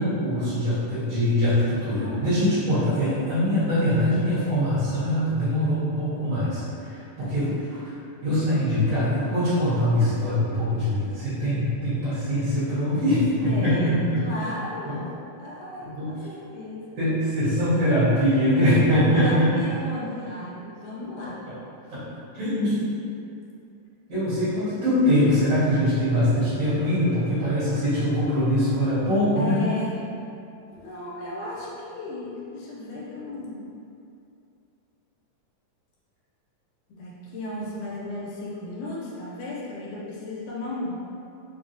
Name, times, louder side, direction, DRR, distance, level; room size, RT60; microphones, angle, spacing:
voice 1, 0.0-7.8 8.2-14.3 14.8-15.0 15.8-16.1 17.0-19.7 21.9-22.0 22.3-22.8 24.1-29.6, equal, 60° right, -13 dB, 2.0 m, -23 dB
voice 2, 2.0-2.4 7.2-7.5 13.5-17.0 18.7-21.5 21.8-22.0 29.4-30.1 30.7-33.7 36.9-41.0, left 2 dB, 80° left, -6 dB, 2.0 m, -35 dB
5.7 x 2.0 x 2.6 m, 2.7 s
omnidirectional pair, 3.7 m